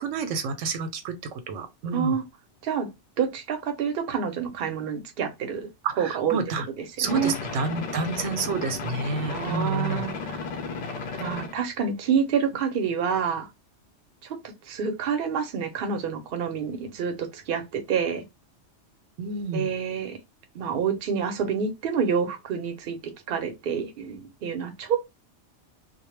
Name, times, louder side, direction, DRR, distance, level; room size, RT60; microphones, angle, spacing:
voice 1, 0.0-2.2 5.8-6.7 7.0-10.0 19.2-19.7, right 4 dB, 90° right, 0.9 m, -29 dB
voice 2, 1.9-2.2 2.6-2.9 3.2-5.7 6.0-6.4 7.0-7.3 9.3-10.4 11.2-13.5 14.2-18.2 19.5-20.2 20.5-23.0 23.3-25.0, right 7 dB, 60° right, 0.7 m, -28 dB
sound 1, 7.0-11.6, left 4 dB, 60° left, 0.4 m, -34 dB
2.1 x 2.1 x 3.0 m
omnidirectional pair, 1.2 m